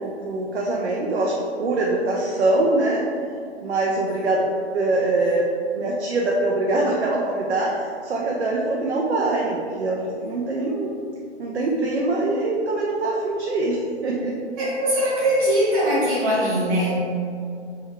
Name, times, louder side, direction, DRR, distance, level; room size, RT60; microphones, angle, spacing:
voice 1, 0.0-1.3 1.6-3.0 3.6-4.5 4.7-5.5 5.7-10.9 11.4-14.4, right 2 dB, 65° right, -3 dB, 0.7 m, -23 dB
voice 2, 14.6-17.0, equal, 15° right, -9 dB, 1.1 m, -21 dB
3.5 x 3.4 x 4.4 m, 2.4 s
hypercardioid pair, 160°, 34 cm